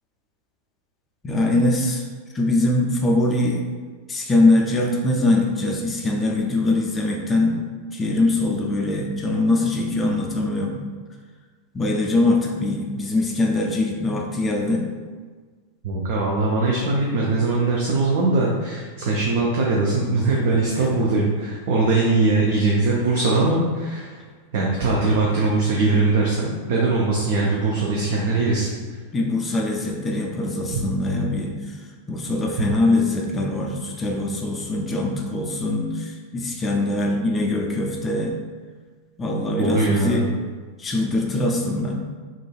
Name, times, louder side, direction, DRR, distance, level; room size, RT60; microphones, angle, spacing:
voice 1, 1.2-2.0 2.3-3.6 4.1-7.6 7.9-10.8 11.7-14.8 20.8-20.9 29.1-31.7 32.1-38.3 39.2-40.2 40.8-41.9, left 2 dB, 20° left, 0 dB, 0.4 m, -22 dB
voice 2, 15.8-24.2 24.5-28.7 39.6-40.2, right 3 dB, 50° right, -3 dB, 0.4 m, -21 dB
3.7 x 2.3 x 2.3 m, 1.5 s
figure-of-eight pair, 90°, 0 cm